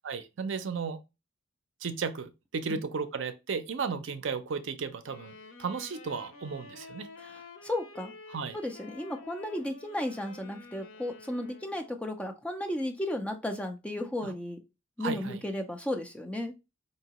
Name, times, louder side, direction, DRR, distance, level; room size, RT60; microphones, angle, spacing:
voice 1, 0.0-1.0 1.8-5.3 5.6-7.1 8.3-8.6 14.2-14.3 15.0-15.4, right 5 dB, 70° right, 0.5 m, -34 dB
Wind instrument woodwind instrument, 5.0-12.2, left 3 dB, 85° left, 0.6 m, -50 dB
voice 2, 7.2-8.1 8.5-14.6 15.0-16.5, left 1 dB, 5° left, 0.4 m, -34 dB
4.5 x 2.8 x 2.9 m
head